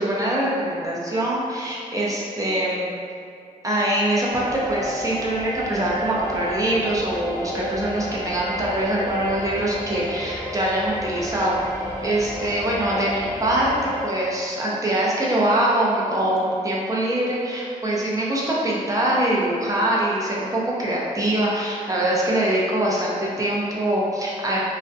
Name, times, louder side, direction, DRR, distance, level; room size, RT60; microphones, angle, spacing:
voice 1, 0.0-3.0 3.6-11.6 12.0-24.6, right 1 dB, 25° right, -5 dB, 0.5 m, -23 dB
sound 1, 4.3-14.1, equal, 15° left, 0.7 m, -32 dB
2.4 x 2.1 x 2.6 m, 2.3 s
cardioid pair, 90°, 15 cm